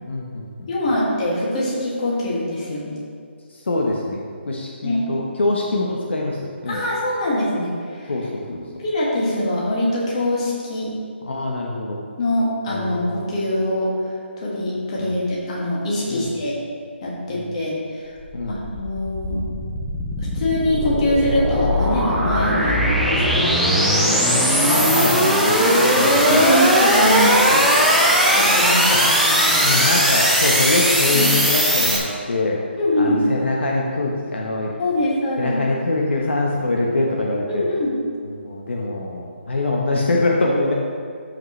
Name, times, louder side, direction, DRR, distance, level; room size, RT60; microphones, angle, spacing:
voice 1, 0.1-0.7 3.7-6.8 8.1-8.4 11.2-12.0 12.7-13.2 15.0-15.2 16.1-16.3 17.3-17.4 18.3-18.6 24.7-25.6 25.9-26.4 27.2-27.3 28.9-29.0 29.6-32.6 33.0-34.7 35.4-37.6 38.3-40.7, left 2 dB, 70° left, -2 dB, 1.1 m, -23 dB
voice 2, 0.7-3.0 4.8-5.0 6.7-8.1 8.5-8.6 8.8-10.9 12.2-13.9 14.4-16.5 17.0-18.1 18.5-19.4 20.2-22.8 23.0-24.9 25.6-25.8 26.2-27.9 28.3-29.8 31.1-31.3 32.8-33.3 34.8-35.6 37.5-38.0, left 1 dB, 30° left, -6 dB, 2.2 m, -23 dB
sound 1, 18.2-32.0, equal, ahead, 0.5 m, -18 dB
13.0 x 5.2 x 3.3 m, 2.2 s
hypercardioid pair, 170°, 7 cm